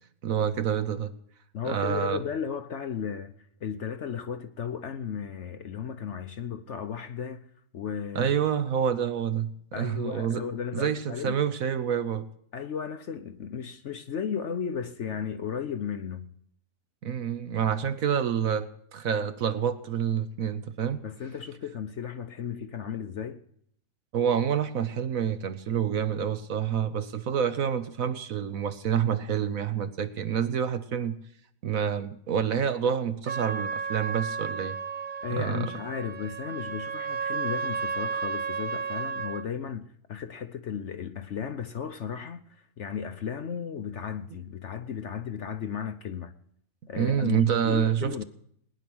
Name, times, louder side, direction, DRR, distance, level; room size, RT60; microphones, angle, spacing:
voice 1, 0.2-1.1 1.6-2.2 8.1-9.5 9.8-10.4 10.7-12.3 17.0-21.0 24.1-31.2 31.6-34.8 35.3-35.7 47.0-48.2, right 8 dB, 60° right, 1.2 m, -27 dB
voice 2, 1.5-3.3 3.6-8.3 9.7-11.4 12.5-16.2 21.0-23.4 35.2-46.3 46.9-48.2, left 7 dB, 55° left, 0.9 m, -35 dB
Trumpet, 33.2-39.5, right 5 dB, 45° right, 0.7 m, -33 dB
19.5 x 10.5 x 6.2 m
omnidirectional pair, 1.7 m